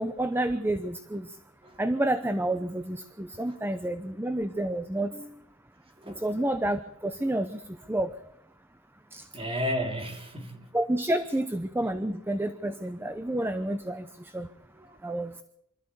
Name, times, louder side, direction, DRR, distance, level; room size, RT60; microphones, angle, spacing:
voice 1, 0.0-1.3 1.8-5.3 6.1-7.6 7.9-8.2 9.1-9.3 10.7-14.5 15.0-15.3, right 1 dB, 10° right, 0.8 m, -29 dB
voice 2, 9.3-10.7 14.7-15.0, equal, 25° right, 3.4 m, -33 dB
25.5 x 14.0 x 8.3 m
head